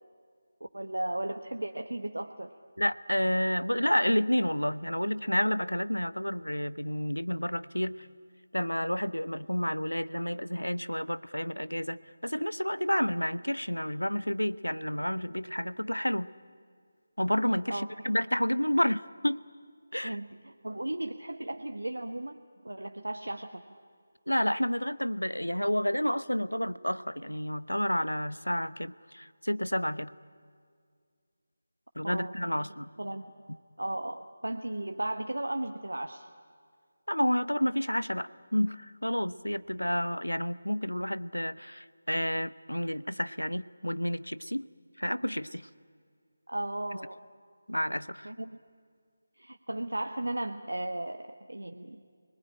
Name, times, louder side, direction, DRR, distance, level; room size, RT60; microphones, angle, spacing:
voice 1, 0.6-2.5 17.7-17.9 20.0-22.4 22.6-23.6 32.0-32.3 33.0-33.3 33.8-36.3 46.5-47.2 48.2-48.6 49.4-52.0, right 1 dB, 70° right, 6 dB, 1.2 m, -35 dB
voice 2, 2.8-8.1 8.5-16.3 17.2-19.4 19.9-20.2 24.3-30.1 32.0-32.9 37.1-44.7 45.0-45.7 47.7-48.3, equal, 85° left, 17 dB, 0.8 m, -30 dB
28.5 x 20.0 x 10.0 m, 2.1 s
figure-of-eight pair, 160°, 0 cm